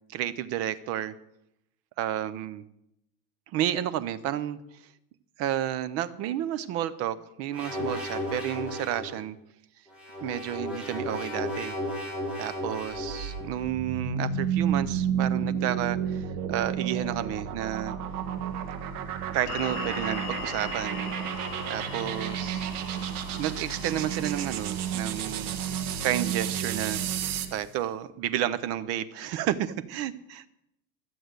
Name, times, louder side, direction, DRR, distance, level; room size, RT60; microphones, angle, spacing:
voice 1, 0.1-1.1 2.0-2.6 3.5-4.6 5.4-9.4 10.2-11.8 12.4-17.9 19.3-21.1 21.7-22.7 23.3-30.4, right 11 dB, 30° right, 15 dB, 0.5 m, -31 dB
sound 1, 7.5-9.1 9.9-13.5, left 1 dB, ahead, 3.4 m, -34 dB
sound 2, 12.9-27.6, right 8 dB, 70° right, 1.5 m, -31 dB
sound 3, 19.5-26.6, left 4 dB, 60° left, 4.2 m, -41 dB
13.5 x 7.7 x 8.0 m, 0.82 s
supercardioid pair, 160°, 46 cm